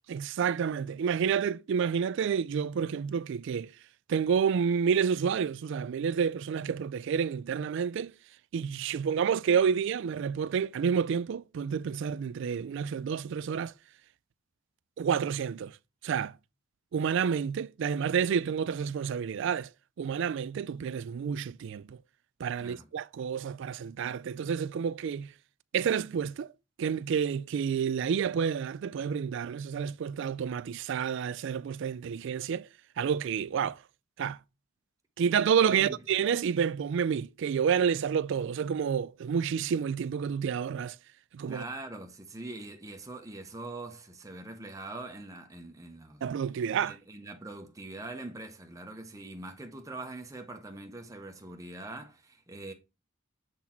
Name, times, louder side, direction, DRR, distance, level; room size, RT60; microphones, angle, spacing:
voice 1, 0.1-3.7 4.1-8.1 8.5-13.7 15.0-15.8 16.0-16.4 16.9-19.7 20.0-22.0 22.4-25.3 25.7-26.5 26.8-32.7 33.0-33.8 34.2-34.4 35.2-41.0 41.3-41.6 46.2-47.0, right 7 dB, 60° right, 0.3 m, -29 dB
voice 2, 41.5-46.2 46.8-52.7, right 2 dB, 15° right, 0.6 m, -43 dB
7.3 x 4.0 x 4.2 m
head